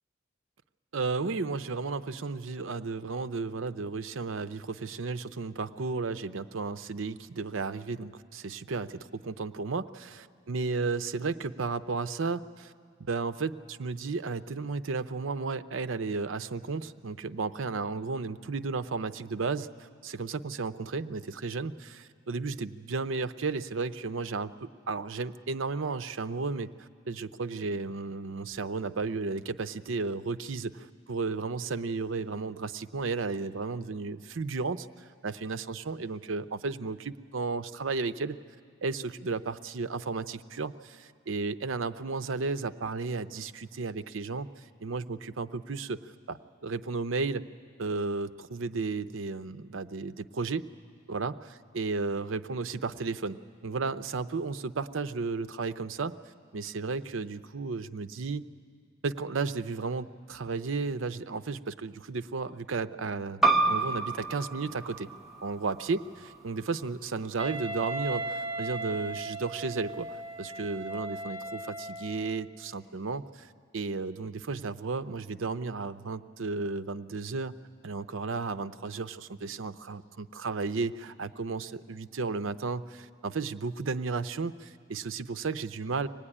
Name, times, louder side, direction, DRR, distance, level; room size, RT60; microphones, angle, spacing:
voice 1, 0.9-12.7 13.1-34.9 35.2-38.4 38.8-46.0 46.3-47.4 47.8-50.7 51.1-51.3 51.7-56.1 56.5-58.4 59.0-65.1 65.4-77.5 77.8-86.1, right 4 dB, 75° right, 12 dB, 0.6 m, -33 dB
sound 1, 63.4-68.6, right 3 dB, ahead, 0.8 m, -31 dB
Wind instrument woodwind instrument, 67.4-72.4, right 2 dB, 30° left, 4.4 m, -37 dB
24.5 x 18.5 x 9.9 m, 2.1 s
head